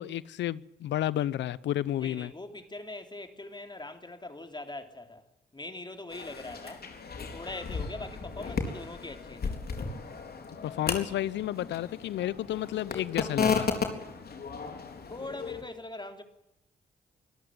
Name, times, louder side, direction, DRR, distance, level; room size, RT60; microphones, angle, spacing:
voice 1, 0.0-2.3 10.6-13.7, left 12 dB, 80° left, 0.8 m, -31 dB
voice 2, 2.0-5.2 5.5-6.9 7.2-9.5 15.1-16.2, left 2 dB, 25° left, 3.6 m, -42 dB
sound 1, 6.1-15.6, left 5 dB, 60° left, 4.1 m, -34 dB
24.5 x 13.5 x 9.5 m
supercardioid pair, 50°, 18 cm